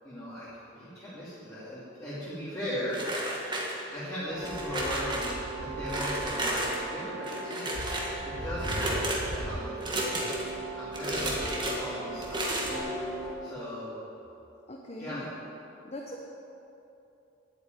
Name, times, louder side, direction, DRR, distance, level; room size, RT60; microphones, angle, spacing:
voice 1, 0.0-3.0 3.9-7.8 8.2-8.9 9.3-10.3 10.8-12.6 12.9-14.0 15.0-15.2, equal, 15° left, -11 dB, 2.5 m, -38 dB
sound 1, 2.9-4.0 4.4-5.3 5.9-6.8 7.2-8.1 8.6-9.2 9.8-10.5 10.9-11.8 12.2-12.8, right 1 dB, 20° right, 1.6 m, -32 dB
sound 2, 4.2-13.3, right 1 dB, 55° right, 3.2 m, -37 dB
voice 2, 14.7-15.4 15.8-16.2, left 1 dB, 35° left, -1 dB, 1.0 m, -40 dB
10.5 x 8.6 x 9.1 m, 2.9 s
head